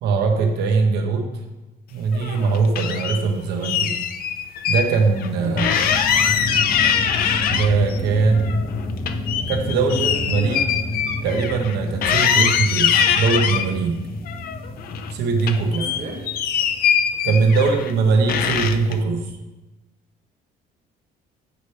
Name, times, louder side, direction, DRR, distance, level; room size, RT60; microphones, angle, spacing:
voice 1, 0.0-1.3 1.9-3.9 4.7-5.7 7.5-8.6 9.5-10.0 10.3-10.6 11.2-14.0 15.1-15.8 17.2-19.3, right 4 dB, 80° right, 3 dB, 1.0 m, -21 dB
sound 1, 2.1-3.2 3.6-4.9 5.2-5.3 5.6-8.0 8.3-11.7 12.0-13.7 14.3-15.1 15.4-17.9 18.3-18.9, left 8 dB, 60° left, 0.4 m, -22 dB
sound 2, 4.8-17.1, left 2 dB, 20° left, 0.6 m, -30 dB
voice 2, 5.4-5.8 9.7-10.7 12.3-12.5 15.8-16.3 17.6-18.4, right 2 dB, 50° right, 1 dB, 1.4 m, -34 dB
8.2 x 4.2 x 3.3 m, 1.0 s
cardioid pair, 110°, 17 cm